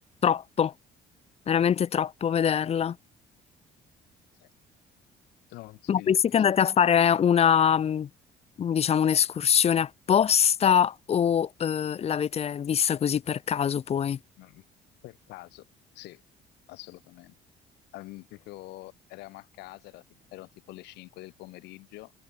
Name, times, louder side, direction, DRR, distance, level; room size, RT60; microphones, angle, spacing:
voice 1, 0.2-0.7 1.5-3.0 5.9-8.1 8.6-14.2, left 8 dB, 40° left, 0.7 m, -23 dB
voice 2, 5.5-6.4 14.4-14.6 15.0-15.7 15.9-16.2 16.7-17.4 17.9-20.0 20.3-22.1, left 20 dB, 90° left, 2.0 m, -46 dB
cardioid pair, 110°, 17 cm